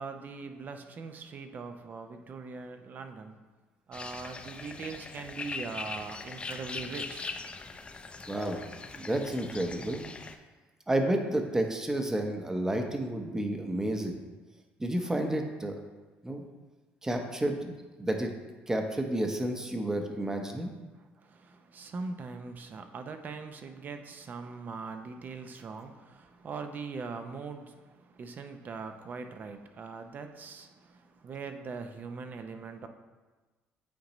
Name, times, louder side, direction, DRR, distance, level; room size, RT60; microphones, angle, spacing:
voice 1, 0.0-3.4 3.9-7.3 21.2-32.9, right 4 dB, 45° right, 7 dB, 0.6 m, -41 dB
sound 1, 3.9-10.3, left 4 dB, 25° left, 0.4 m, -41 dB
voice 2, 8.3-8.6 8.9-10.1 10.9-14.1 14.8-15.8 16.2-16.4 17.0-18.3 18.7-20.7, right 1 dB, 15° right, 4 dB, 0.8 m, -31 dB
8.5 x 3.9 x 3.0 m, 1.3 s
cardioid pair, 95°, 4 cm